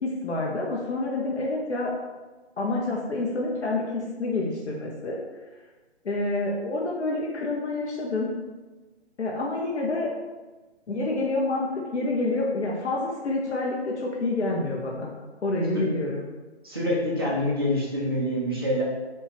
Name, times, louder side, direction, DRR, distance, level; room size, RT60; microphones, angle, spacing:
voice 1, 0.0-1.9 2.6-5.2 6.0-8.3 9.2-10.1 10.9-15.2 15.4-16.2, left 2 dB, 75° left, -3 dB, 0.7 m, -28 dB
voice 2, 16.6-18.8, left 1 dB, 20° right, -7 dB, 0.5 m, -26 dB
4.5 x 2.3 x 2.9 m, 1.2 s
figure-of-eight pair, 160°, 34 cm